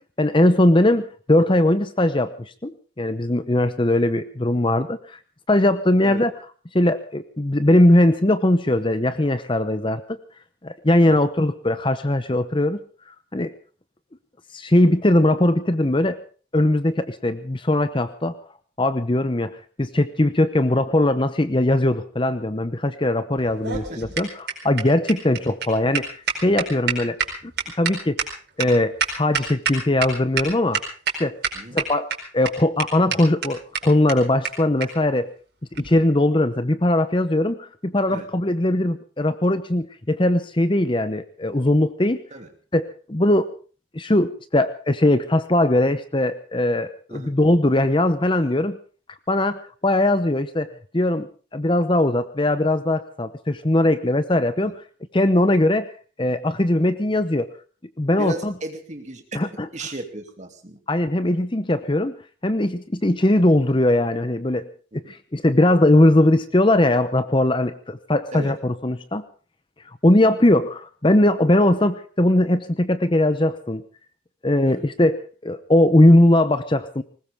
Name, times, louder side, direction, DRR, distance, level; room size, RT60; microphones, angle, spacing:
voice 1, 0.2-5.2 5.5-6.3 6.7-10.2 10.6-12.8 13.3-13.5 14.5-16.2 16.5-18.4 18.8-27.2 27.4-27.5 27.8-28.2 28.6-30.8 31.2-31.4 31.7-35.3 35.8-42.2 42.7-43.5 43.9-48.8 49.3-50.7 50.9-54.7 55.1-55.9 56.2-57.5 58.0-58.5 59.3-59.7 60.9-62.2 62.4-64.7 64.9-69.2 70.0-73.8 74.4-77.0, left 1 dB, 25° left, 12 dB, 0.8 m, -20 dB
sound 1, 23.4-30.1 30.4-30.5 30.7-31.1 31.4-32.1 32.5-32.6 32.8-32.9 33.1-33.2 33.4-33.5 33.7-33.8 34.1-34.2 34.4-34.5 34.8-34.9 35.7-35.9, right 7 dB, 50° right, 4.7 m, -26 dB
voice 2, 23.7-24.0 31.5-31.8 38.1-38.3 42.3-42.5 47.1-47.3 54.6-54.7 58.2-59.4 59.7-60.8 64.9-65.2 68.3-68.5 74.7-74.9, right 2 dB, 35° right, 5 dB, 2.7 m, -35 dB
20.5 x 19.5 x 3.6 m, 0.38 s
head